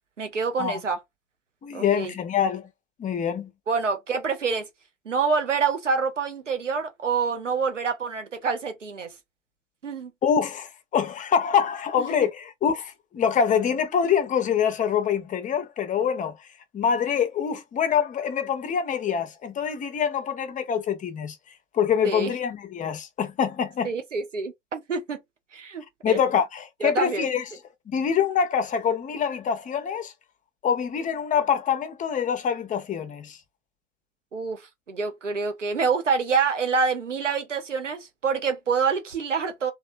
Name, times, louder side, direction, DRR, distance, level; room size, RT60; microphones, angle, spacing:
voice 1, 0.2-1.0 1.7-2.1 3.7-4.7 5.1-9.1 9.8-10.1 12.0-12.1 22.0-22.3 23.8-25.2 25.5-26.2 26.8-27.3 34.3-34.6 34.9-39.7, right 5 dB, 90° right, 0.6 m, -26 dB
voice 2, 1.6-2.7 3.0-3.5 10.2-16.4 16.7-21.4 21.7-23.9 26.0-27.4 27.9-30.1 30.6-33.4, left 7 dB, 20° left, 0.6 m, -25 dB
2.9 x 2.3 x 2.5 m
figure-of-eight pair, 75°, 36 cm